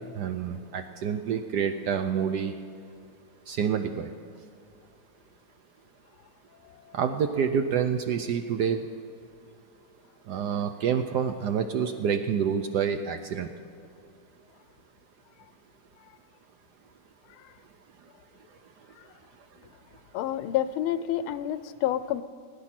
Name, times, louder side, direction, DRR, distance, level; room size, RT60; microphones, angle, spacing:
voice 1, 0.0-2.5 3.5-4.1 6.9-8.9 10.3-13.5, right 7 dB, 70° right, 8 dB, 1.0 m, -28 dB
voice 2, 20.1-22.2, left 11 dB, 90° left, 14 dB, 1.5 m, -28 dB
18.0 x 9.7 x 5.9 m, 2.5 s
omnidirectional pair, 2.3 m